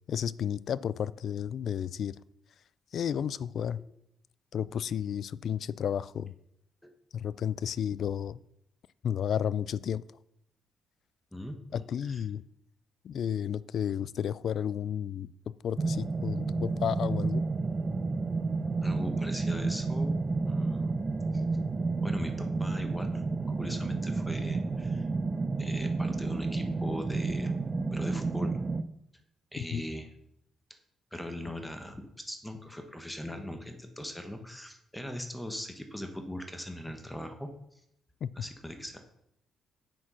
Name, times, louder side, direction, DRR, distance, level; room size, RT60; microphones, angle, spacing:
voice 1, 0.1-2.2 2.9-3.8 4.5-6.3 7.1-8.4 9.0-10.0 11.7-12.4 13.0-15.3 15.6-17.4 29.6-29.8 38.2-38.3, left 9 dB, 65° left, 19 dB, 0.3 m, -32 dB
voice 2, 11.3-12.2 18.8-20.2 20.5-21.0 21.3-21.4 22.0-25.1 25.6-27.6 27.9-28.6 29.5-30.1 31.1-37.5 38.3-39.0, left 1 dB, 5° left, 6 dB, 1.2 m, -40 dB
sound 1, 15.8-28.8, right 3 dB, 30° right, 0.6 m, -31 dB
7.6 x 6.2 x 5.7 m, 0.76 s
cardioid pair, 90°, 0 cm